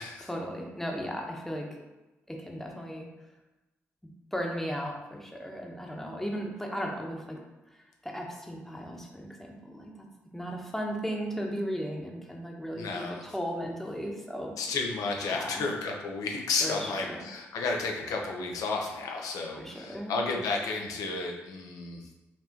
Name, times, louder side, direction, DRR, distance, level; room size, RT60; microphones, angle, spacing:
voice 1, 0.2-1.8 2.3-3.1 4.3-7.4 7.7-10.1 10.3-14.6 15.3-15.7 16.6-17.3 19.6-20.2, equal, 5° left, 0 dB, 0.9 m, -36 dB
voice 2, 12.7-13.2 14.6-22.1, left 3 dB, 75° left, 1 dB, 0.6 m, -32 dB
4.4 x 2.7 x 2.9 m, 1.0 s
hypercardioid pair, 45°, 6 cm